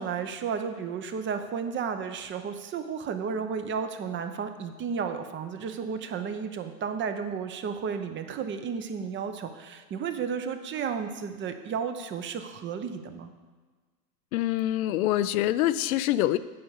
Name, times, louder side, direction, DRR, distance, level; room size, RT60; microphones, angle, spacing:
voice 1, 0.0-13.3, right 6 dB, 25° right, 8 dB, 0.8 m, -33 dB
voice 2, 14.3-16.4, left 14 dB, 70° left, 14 dB, 0.6 m, -25 dB
9.5 x 5.4 x 7.1 m, 1.4 s
hypercardioid pair, 115°, 44 cm